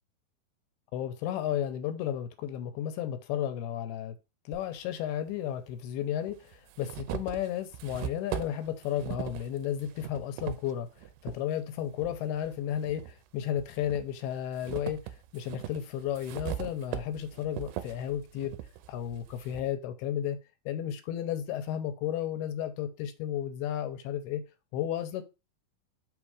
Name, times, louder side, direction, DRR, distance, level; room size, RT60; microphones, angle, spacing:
voice 1, 0.9-4.2 4.5-10.9 11.2-18.5 18.9-20.4 20.7-24.4 24.7-25.2, left 10 dB, 85° left, 2.6 m, -33 dB
sound 1, 4.5-4.6 5.7-5.8 6.3-11.4 11.9-13.1 13.6-19.7, right 13 dB, 80° right, 2.3 m, -40 dB
5.7 x 3.6 x 4.7 m
omnidirectional pair, 4.5 m